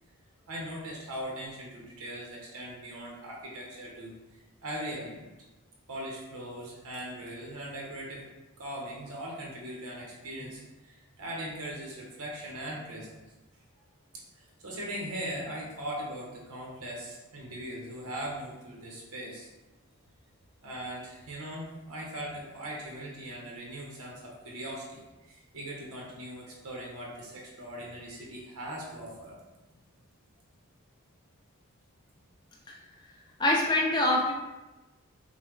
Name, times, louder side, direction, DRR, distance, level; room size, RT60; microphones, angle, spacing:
voice 1, 0.5-4.1 4.6-5.3 5.9-8.2 8.6-13.2 14.1-19.5 20.6-29.4, right 1 dB, 85° right, -3 dB, 1.0 m, -40 dB
voice 2, 33.4-34.3, left 1 dB, 20° left, -1 dB, 0.3 m, -24 dB
5.5 x 2.2 x 3.1 m, 1.1 s
head